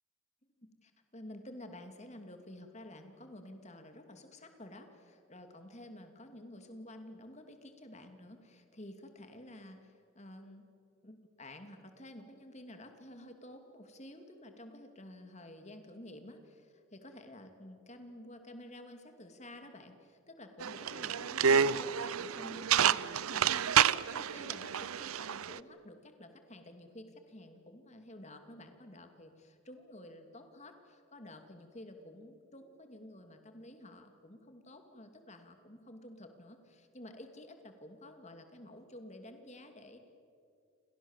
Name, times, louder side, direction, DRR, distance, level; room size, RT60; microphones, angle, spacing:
voice 1, 0.6-10.7 11.0-40.1, left 1 dB, 30° left, 6 dB, 2.6 m, -51 dB
sound 1, 20.6-25.6, right 8 dB, 90° right, 0.6 m, -29 dB
30.0 x 25.5 x 7.4 m, 2.5 s
head